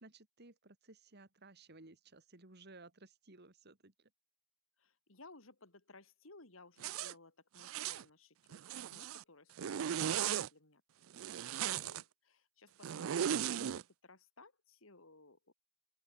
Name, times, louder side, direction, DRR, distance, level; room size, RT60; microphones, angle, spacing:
voice 1, 0.0-3.9 13.4-13.8, right 2 dB, 55° right, 2.8 m, -57 dB
voice 2, 4.8-10.8 11.2-15.5, left 3 dB, 75° left, 3.8 m, -60 dB
Zipper (clothing), 6.8-7.1 7.6-8.0 8.5-9.2 9.6-10.5 11.1-12.0 12.8-13.8, right 9 dB, 90° right, 0.4 m, -37 dB
open air
head